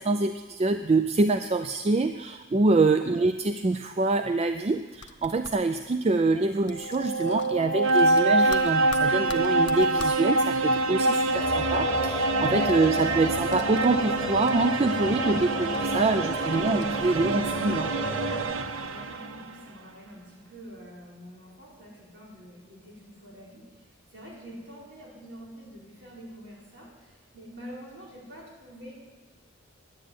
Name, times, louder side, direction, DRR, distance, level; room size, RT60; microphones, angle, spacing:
voice 1, 0.0-17.9, right 3 dB, 30° right, 9 dB, 0.3 m, -25 dB
sound 1, 4.9-5.6 6.7-7.6 7.9-10.2 11.5-14.2 14.5-15.1 15.6-15.8 16.4-17.3, left 5 dB, 60° left, 0.8 m, -44 dB
sound 2, 6.7-19.5, right 2 dB, 85° right, 0.7 m, -26 dB
sound 3, 11.3-18.4, right 1 dB, 20° left, 1.6 m, -33 dB
voice 2, 18.7-28.9, equal, 55° right, -5 dB, 4.7 m, -46 dB
10.5 x 9.0 x 9.5 m, 1.3 s
head